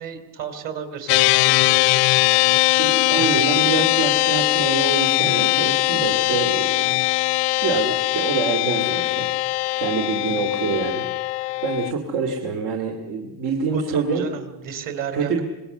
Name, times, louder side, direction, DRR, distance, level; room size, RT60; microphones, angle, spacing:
voice 1, 0.0-2.6 3.1-3.5 13.7-15.4, right 7 dB, 50° right, 8 dB, 3.4 m, -34 dB
sound 1, 1.1-11.9, left 20 dB, 75° left, 0.7 m, -20 dB
voice 2, 2.8-6.9 7.6-9.3 9.5-14.3 15.1-15.4, right 4 dB, 75° right, 3 dB, 2.8 m, -26 dB
25.5 x 22.0 x 6.9 m, 1.1 s
cardioid pair, 165°, 41 cm